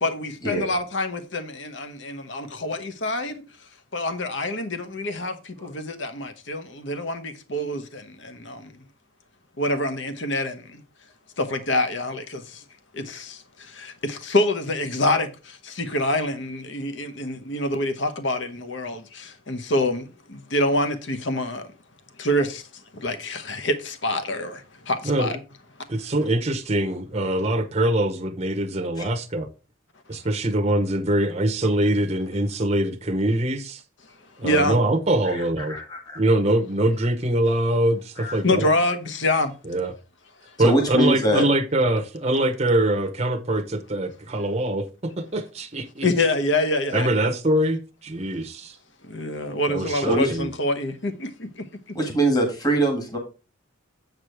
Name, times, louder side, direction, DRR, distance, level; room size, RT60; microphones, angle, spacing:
voice 1, 0.0-3.3 3.9-5.3 5.6-8.0 8.5-8.6 9.6-10.6 11.4-12.4 13.1-13.3 13.8-15.3 15.8-19.0 19.5-20.0 20.5-21.6 22.2-22.6 23.0-24.6 24.9-25.4 34.4-34.8 38.4-39.5 46.0-47.3 49.1-51.3, left 1 dB, 60° left, 1.0 m, -25 dB
voice 2, 25.9-29.5 30.1-33.8 34.4-35.8 36.1-38.7 39.6-39.9 40.6-46.1 46.9-48.8 49.7-50.5, right 1 dB, 30° right, 0.8 m, -23 dB
voice 3, 35.7-36.2 38.2-38.4 40.6-41.4 50.1-50.4 52.0-53.2, right 1 dB, 20° left, 1.7 m, -22 dB
7.8 x 4.8 x 4.7 m
head